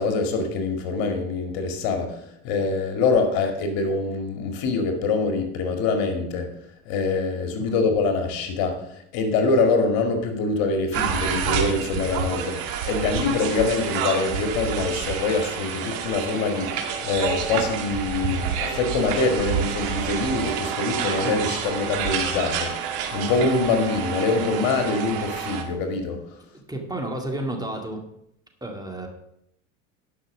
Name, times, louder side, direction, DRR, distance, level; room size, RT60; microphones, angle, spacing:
voice 1, 0.0-6.5 6.9-8.8 9.1-22.7 23.1-26.2, left 3 dB, 65° left, 5 dB, 2.1 m, -24 dB
sound 1, 10.9-25.6, right 7 dB, 65° right, 1.9 m, -28 dB
voice 2, 26.7-28.0 28.6-29.1, right 1 dB, 10° right, 2 dB, 2.2 m, -31 dB
11.0 x 5.9 x 6.4 m, 0.75 s
supercardioid pair, 90°, 38 cm